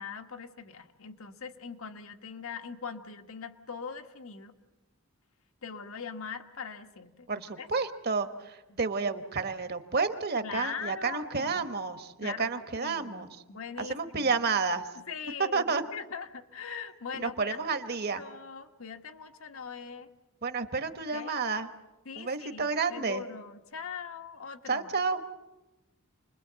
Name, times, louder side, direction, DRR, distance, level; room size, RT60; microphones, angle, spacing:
voice 1, 0.0-4.5 5.6-7.3 7.6-7.9 8.7-8.8 10.4-11.7 12.2-14.3 15.1-17.6 18.2-20.1 21.1-21.4 22.0-24.9, left 6 dB, 80° left, 6 dB, 1.4 m, -41 dB
voice 2, 7.3-13.3 13.8-14.9 15.4-15.8 17.1-18.2 20.4-21.7 22.1-23.2 24.7-25.2, right 4 dB, 50° right, 9 dB, 1.3 m, -30 dB
28.5 x 21.5 x 7.6 m, 1.1 s
head